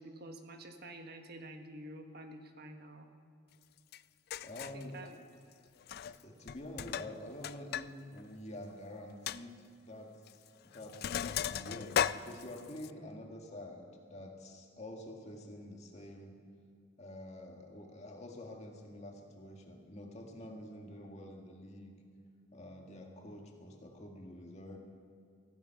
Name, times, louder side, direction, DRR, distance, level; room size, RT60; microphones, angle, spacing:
voice 1, 0.0-3.1 4.7-5.2, right 1 dB, 55° right, 5 dB, 1.4 m, -49 dB
Sink (filling or washing), 3.9-4.0 4.3-4.8 5.8-6.2 6.5-7.9 8.2-8.3 8.7-8.8 9.3-9.4 10.3-10.5 10.7-12.9, left 9 dB, 50° left, 0.3 m, -36 dB
voice 2, 4.4-5.2 6.1-16.4 17.0-21.9 22.5-24.8, left 1 dB, 35° left, 1 dB, 2.0 m, -48 dB
16.0 x 14.5 x 5.8 m, 2.3 s
head